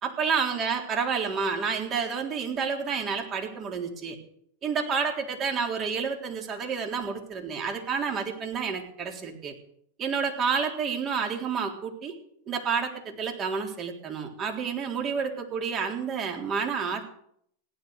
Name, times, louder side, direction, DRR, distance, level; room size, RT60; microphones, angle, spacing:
voice 1, 0.0-4.2 4.6-9.5 10.0-12.1 12.5-17.1, right 6 dB, 35° right, 2 dB, 3.7 m, -29 dB
16.5 x 11.5 x 6.6 m, 0.69 s
hypercardioid pair, 105°, 0 cm